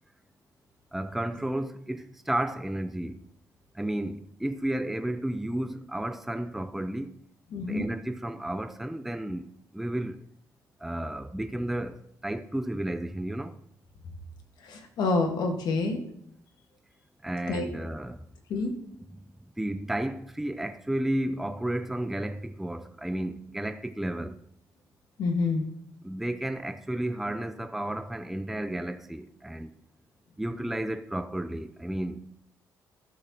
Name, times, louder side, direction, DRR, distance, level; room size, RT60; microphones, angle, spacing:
voice 1, 0.9-3.2 3.8-7.1 7.7-10.2 10.8-11.9 12.2-13.5 17.2-18.2 19.6-24.4 26.0-29.7 30.4-32.2, right 1 dB, 5° right, 0.4 m, -32 dB
voice 2, 7.5-7.9 14.6-16.0 17.5-17.7 18.5-18.7 25.2-25.6, left 3 dB, 75° left, 1.6 m, -27 dB
14.0 x 6.2 x 2.9 m
cardioid pair, 120°, 7 cm